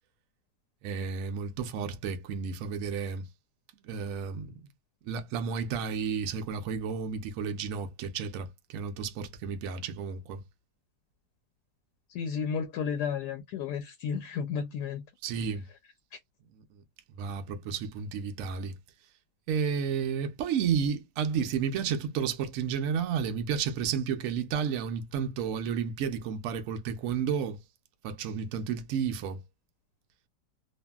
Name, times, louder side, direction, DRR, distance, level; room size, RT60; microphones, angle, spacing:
voice 1, 0.8-3.2 3.8-4.5 5.0-10.4 15.2-15.6 17.2-18.7 19.5-27.6 28.0-29.4, right 7 dB, 80° right, 0.7 m, -32 dB
voice 2, 12.1-15.0, left 6 dB, 75° left, 1.1 m, -32 dB
2.7 x 2.5 x 2.2 m
omnidirectional pair, 1.9 m